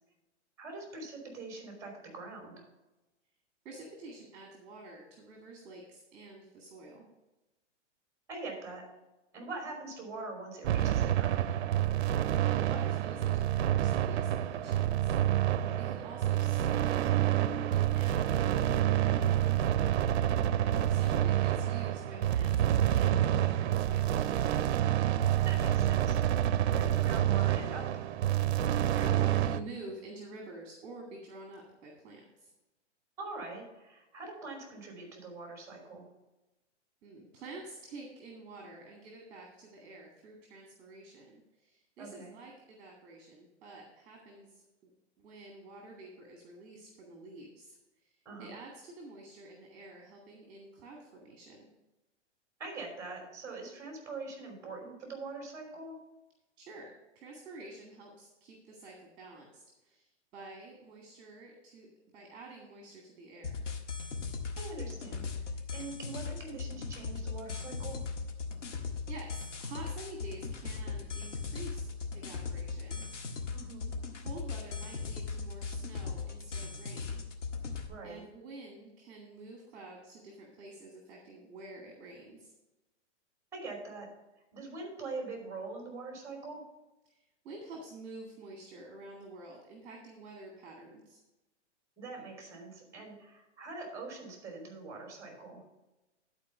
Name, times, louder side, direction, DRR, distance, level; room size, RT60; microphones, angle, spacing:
voice 1, 0.6-2.7 8.3-8.8 9.3-11.5 15.6-15.8 25.4-26.2 26.7-27.9 33.2-36.1 42.0-42.3 48.2-48.5 52.6-56.0 64.6-65.3 65.7-68.0 73.5-73.9 77.9-78.2 83.5-84.1 84.5-86.6 92.0-95.6, right 3 dB, 10° right, 1 dB, 3.1 m, -43 dB
voice 2, 3.6-7.0 12.4-15.2 15.8-19.6 20.9-22.6 22.9-24.7 28.6-32.5 37.0-44.9 45.2-47.8 48.0-51.7 56.6-61.9 62.1-63.6 68.6-73.0 74.2-77.2 78.0-82.5 87.1-91.2, right 2 dB, 30° right, 0 dB, 1.9 m, -49 dB
sound 1, 10.6-29.6, right 11 dB, 65° right, 0.6 m, -28 dB
sound 2, 63.4-77.9, left 4 dB, 80° left, 1.6 m, -38 dB
11.5 x 4.5 x 6.6 m, 1.0 s
hypercardioid pair, 150°, 36 cm